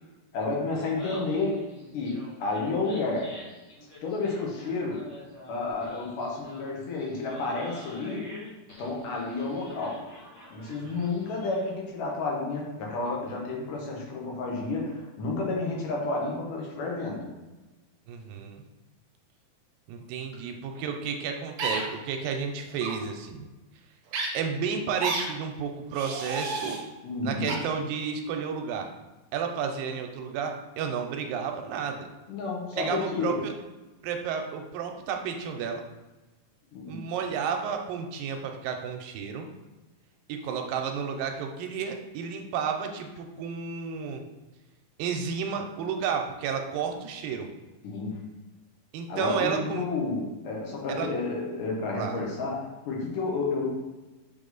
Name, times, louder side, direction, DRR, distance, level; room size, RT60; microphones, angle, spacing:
voice 1, 0.3-1.7 1.9-3.3 4.0-5.0 5.5-8.3 8.8-10.0 10.5-17.3 27.0-27.6 32.3-33.4 36.7-37.0 47.8-48.2 49.1-53.7, left 3 dB, 70° left, -2 dB, 2.7 m, -31 dB
Laughter, 0.8-11.8, left 2 dB, 45° left, 1.8 m, -47 dB
voice 2, 18.1-18.6 19.9-23.5 24.3-26.8 27.2-28.9 29.3-32.1 32.7-33.5 34.0-35.8 36.9-39.5 40.3-44.2 45.0-47.5 48.9-49.9 50.9-51.1 52.0-52.2, right 6 dB, 90° right, 4 dB, 2.4 m, -32 dB
sound 1, 21.6-21.8 22.7-22.9 24.1-24.3 25.0-25.2 25.9-26.8 27.5-27.6, right 3 dB, 60° right, 2.1 m, -31 dB
7.3 x 3.7 x 4.0 m, 1.1 s
omnidirectional pair, 4.1 m